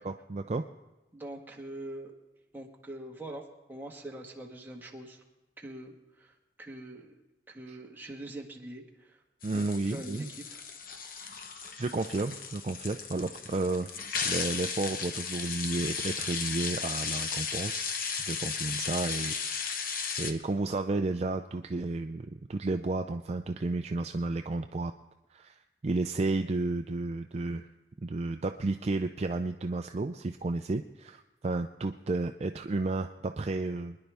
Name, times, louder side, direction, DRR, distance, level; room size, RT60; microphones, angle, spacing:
voice 1, 0.0-0.6 7.7-7.8 9.4-10.3 11.8-13.9 14.2-19.9 20.2-24.9 25.3-27.7 28.0-34.0, right 2 dB, 35° right, 6 dB, 0.4 m, -32 dB
voice 2, 1.1-2.1 2.5-3.4 3.7-5.2 5.6-7.1 7.5-9.2 9.5-10.3 10.5-10.6, right 1 dB, 10° right, -1 dB, 1.5 m, -43 dB
sound 1, 9.4-20.3, left 6 dB, 50° left, 0.9 m, -35 dB
24.0 x 10.5 x 3.4 m, 1.0 s
head